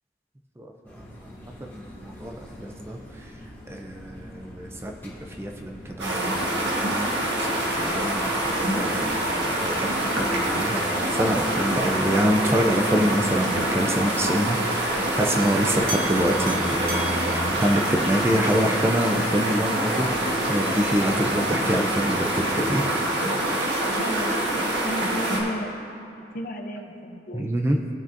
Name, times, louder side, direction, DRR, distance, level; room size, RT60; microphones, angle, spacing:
voice 1, 0.6-1.1 1.4-3.0 3.7-5.1 5.4-20.1 20.5-22.8 24.0-24.4 27.3-27.8, equal, 15° right, 1 dB, 0.5 m, -26 dB
sound 1, 0.8-11.9, equal, 10° left, 1.9 m, -44 dB
sound 2, 6.0-25.4, right 1 dB, 85° right, 1.4 m, -25 dB
sound 3, 14.8-21.6, right 1 dB, 50° right, 1.2 m, -38 dB
voice 2, 24.0-27.5, equal, 50° left, 4 dB, 0.7 m, -34 dB
16.5 x 6.0 x 2.6 m, 2.6 s
head